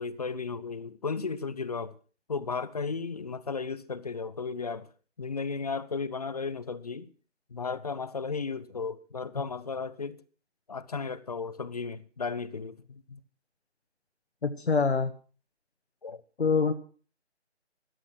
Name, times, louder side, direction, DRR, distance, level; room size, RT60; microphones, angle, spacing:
voice 1, 0.0-2.0 2.3-4.9 5.2-7.1 7.5-10.2 10.7-13.2 16.0-16.2, left 4 dB, 35° left, 0.8 m, -34 dB
voice 2, 14.4-15.1 16.4-16.7, left 4 dB, 65° left, 1.6 m, -25 dB
15.0 x 11.0 x 5.8 m
figure-of-eight pair, 155°, 35 cm